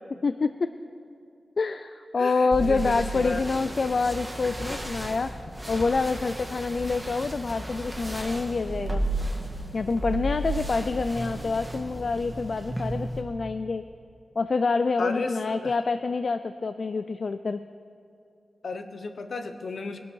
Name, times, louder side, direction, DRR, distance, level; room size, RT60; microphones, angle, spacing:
voice 1, 0.2-0.7 1.6-5.4 5.7-9.0 9.7-13.8 14.4-17.6, left 4 dB, 55° left, 11 dB, 0.4 m, -27 dB
voice 2, 2.2-3.4 15.0-15.7 18.6-20.0, left 3 dB, 70° left, 8 dB, 1.0 m, -34 dB
sound 1, 2.5-13.2, right 1 dB, 5° right, 1.7 m, -33 dB
21.5 x 12.0 x 4.6 m, 2.6 s
wide cardioid pair, 110°, 0 cm